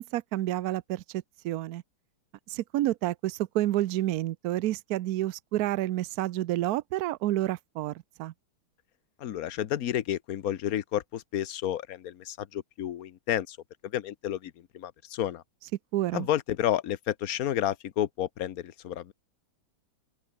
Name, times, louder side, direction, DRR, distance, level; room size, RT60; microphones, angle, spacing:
voice 1, 0.0-1.8 2.5-7.9 8.2-8.3 15.9-16.3, right 15 dB, 85° right, 0.8 m, -29 dB
voice 2, 9.2-13.6 13.8-15.4 16.1-19.1, left 11 dB, 55° left, 1.1 m, -31 dB
open air
omnidirectional pair, 2.3 m